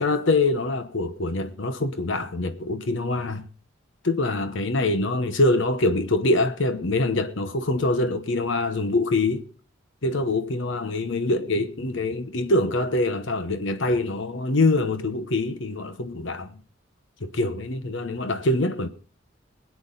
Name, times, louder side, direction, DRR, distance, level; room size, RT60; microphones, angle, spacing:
voice 1, 0.0-3.4 4.0-9.5 10.0-16.5 17.2-18.9, left 2 dB, 70° left, 1.0 m, -24 dB
22.0 x 9.4 x 4.0 m
head